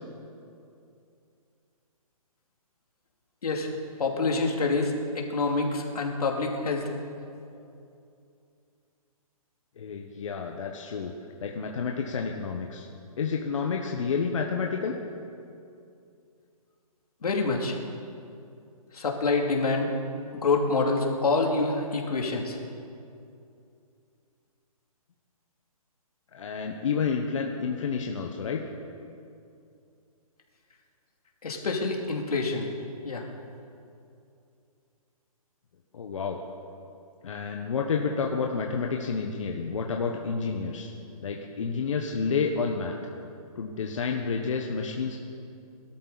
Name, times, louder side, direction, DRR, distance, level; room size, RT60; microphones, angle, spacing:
voice 1, 4.0-6.9 17.2-17.8 18.9-19.9 20.4-22.6 31.4-32.7 33.0-33.3, left 3 dB, 80° left, 1 dB, 2.8 m, -26 dB
voice 2, 9.8-11.1 11.4-12.9 13.2-14.9 26.3-28.6 35.9-36.4 37.2-40.9 41.2-43.0 43.5-45.2, left 5 dB, 55° left, 2 dB, 1.2 m, -30 dB
21.5 x 13.0 x 4.1 m, 2.6 s
hypercardioid pair, 165°, 19 cm